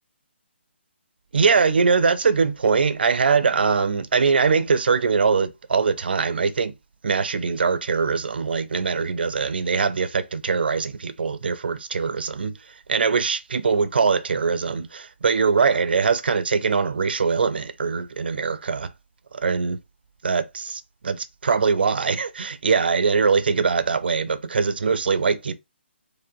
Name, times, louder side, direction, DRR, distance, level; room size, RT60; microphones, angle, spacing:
voice 1, 1.3-6.7 7.0-12.6 12.9-18.9 19.3-19.8 20.2-25.6, right 5 dB, 55° right, 0.5 m, -22 dB
4.9 x 2.1 x 3.7 m
figure-of-eight pair, 140°, 6 cm